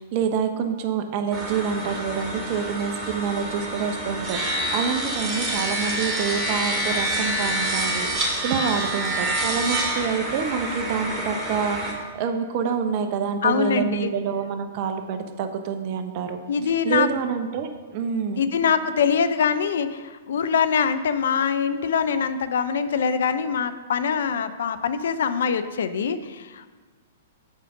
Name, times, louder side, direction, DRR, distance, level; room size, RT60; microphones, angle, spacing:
voice 1, 0.0-16.4 16.8-18.4, right 6 dB, 45° right, 7 dB, 0.9 m, -27 dB
sound 1, 1.3-11.9, right 1 dB, 20° right, 2.3 m, -27 dB
voice 2, 13.4-14.1 16.5-17.1 18.4-26.7, left 6 dB, 65° left, 11 dB, 0.5 m, -23 dB
7.3 x 5.0 x 5.9 m, 1.4 s
hypercardioid pair, 110°, 0 cm